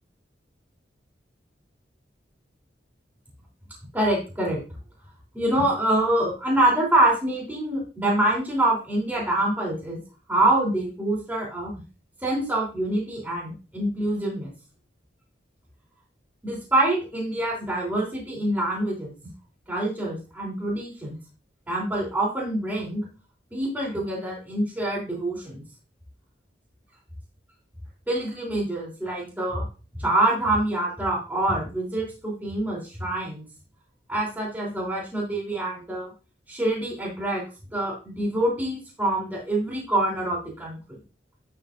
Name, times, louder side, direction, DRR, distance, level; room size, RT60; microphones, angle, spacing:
voice 1, 3.9-4.6 5.3-10.0 10.3-11.7 12.2-14.5 16.4-19.1 19.7-21.2 21.7-23.0 23.5-25.6 28.1-29.7 29.9-33.4 34.1-36.1 36.5-37.4 37.7-40.8, right 1 dB, 10° right, -5 dB, 3.4 m, -25 dB
11.5 x 6.6 x 2.6 m, 0.33 s
head